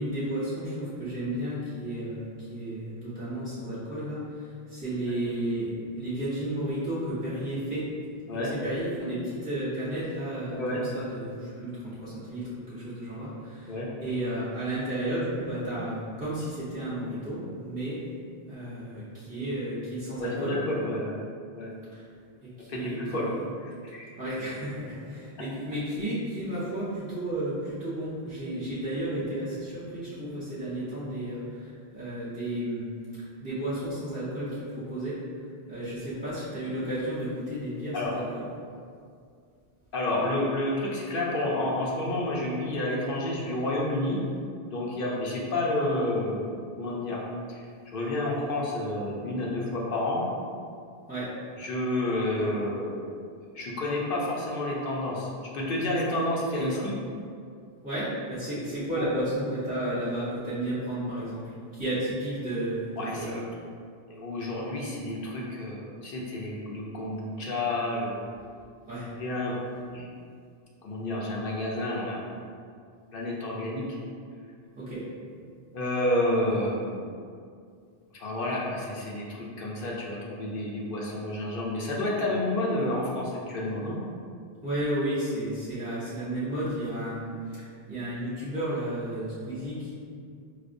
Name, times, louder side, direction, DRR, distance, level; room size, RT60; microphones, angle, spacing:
voice 1, 0.0-7.9 8.4-13.7 14.0-18.0 18.5-20.6 21.9-22.0 22.4-23.4 24.2-32.8 33.4-35.2 35.7-38.4 51.1-51.4 56.6-56.8 57.8-63.4 68.9-69.1 74.8-75.0 84.6-89.9, right 1 dB, 10° right, -13 dB, 0.6 m, -33 dB
voice 2, 20.2-21.1 21.5-21.7 22.7-23.3 23.8-24.0 37.9-38.1 39.9-44.2 44.7-47.2 47.5-50.2 51.6-53.2 53.5-55.3 55.5-56.9 59.0-59.1 63.0-63.4 64.1-68.3 69.2-69.5 69.9-70.0 70.8-72.2 73.1-73.8 75.7-77.1 78.2-84.0, left 1 dB, 65° left, -4 dB, 0.8 m, -30 dB
4.9 x 2.1 x 2.5 m, 2.3 s
omnidirectional pair, 1.0 m